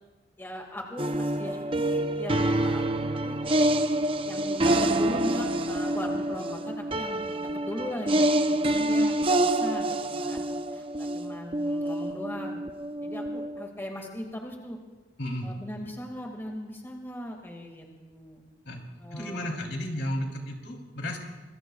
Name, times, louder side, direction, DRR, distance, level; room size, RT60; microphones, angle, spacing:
voice 1, 0.4-2.8 3.2-3.4 4.3-10.4 10.7-12.6 13.0-14.8 15.4-18.4 19.0-19.6, left 1 dB, 15° left, 1 dB, 2.1 m, -39 dB
sound 1, 1.0-13.7, right 1 dB, 30° right, 0.6 m, -27 dB
voice 2, 15.2-15.5 18.6-18.8 19.1-21.2, left 1 dB, 75° left, 1 dB, 3.4 m, -33 dB
26.0 x 22.0 x 2.4 m, 1.2 s
head